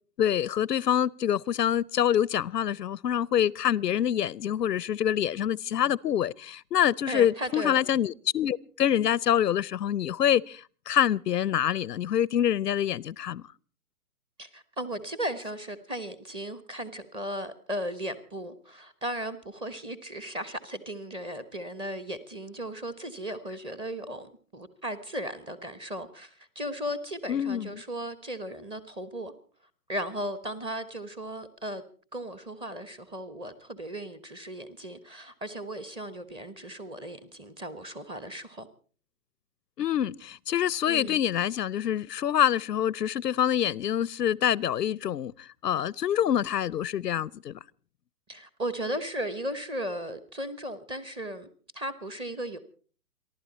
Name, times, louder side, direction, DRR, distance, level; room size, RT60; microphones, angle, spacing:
voice 1, 0.2-10.6 10.9-13.4 27.3-27.8 39.8-45.3 45.6-47.6, left 10 dB, 90° left, 0.7 m, -26 dB
voice 2, 7.1-7.8 14.4-29.3 29.9-31.8 32.1-38.7 40.9-41.2 48.3-51.5 51.7-52.6, equal, 10° right, 1.1 m, -36 dB
29.0 x 12.0 x 4.2 m
hypercardioid pair, 140°, 47 cm